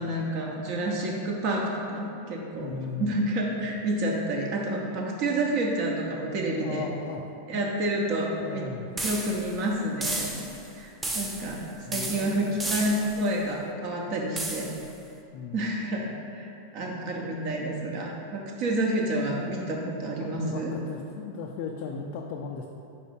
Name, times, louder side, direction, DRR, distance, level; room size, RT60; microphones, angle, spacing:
voice 1, 0.0-2.7 3.0-6.8 7.5-8.7 9.0-10.4 10.7-14.7 15.5-20.7, right 1 dB, 45° right, -1 dB, 1.0 m, -29 dB
voice 2, 2.6-3.2 6.6-7.3 7.5-7.8 8.2-8.9 11.9-12.6 15.3-15.7 20.2-22.7, left 6 dB, 45° left, 1 dB, 0.4 m, -37 dB
sound 1, 9.0-9.6 10.0-10.6 11.0-11.6 11.9-13.2 14.4-14.9, right 2 dB, 10° right, 0.6 m, -33 dB
5.2 x 4.1 x 5.2 m, 2.7 s
figure-of-eight pair, 90°, 0 cm